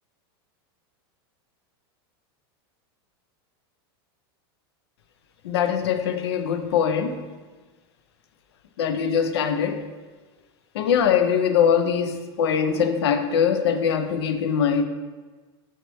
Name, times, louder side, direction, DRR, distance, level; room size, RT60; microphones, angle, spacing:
voice 1, 5.4-7.2 8.8-9.8 10.7-14.8, left 7 dB, 85° left, 8 dB, 0.4 m, -22 dB
5.6 x 3.0 x 3.0 m, 1.3 s
supercardioid pair, 130°, 13 cm